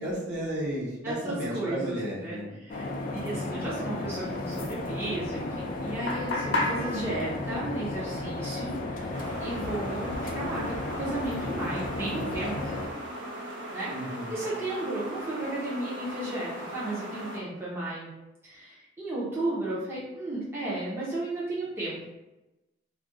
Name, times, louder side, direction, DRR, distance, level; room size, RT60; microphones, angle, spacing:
voice 1, 0.0-2.5 13.9-14.3, right 1 dB, 60° right, -6 dB, 1.0 m, -33 dB
voice 2, 1.0-12.8 13.7-18.1 18.4-22.1, right 2 dB, 15° right, -8 dB, 0.6 m, -34 dB
sound 1, 2.7-12.9, left 2 dB, 45° left, 0.3 m, -34 dB
sound 2, 4.2-12.9, left 2 dB, 65° left, 0.8 m, -38 dB
sound 3, 9.1-17.4, right 1 dB, 80° right, 0.6 m, -39 dB
2.4 x 2.2 x 3.7 m, 1.0 s
head